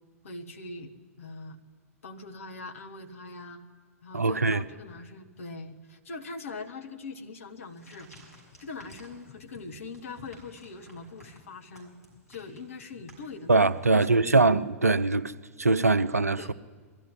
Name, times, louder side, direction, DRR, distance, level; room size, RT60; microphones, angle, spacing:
voice 1, 0.2-0.9 1.2-1.6 2.0-3.6 4.0-8.1 8.6-12.0 12.3-14.5 16.4-16.5, left 3 dB, 60° left, 1.7 m, -42 dB
voice 2, 4.1-4.6 13.5-15.3 15.6-16.5, right 3 dB, 80° right, 0.6 m, -22 dB
sound 1, 7.5-14.1, left 1 dB, 85° left, 6.0 m, -54 dB
21.5 x 13.5 x 9.9 m
figure-of-eight pair, 100°, 8 cm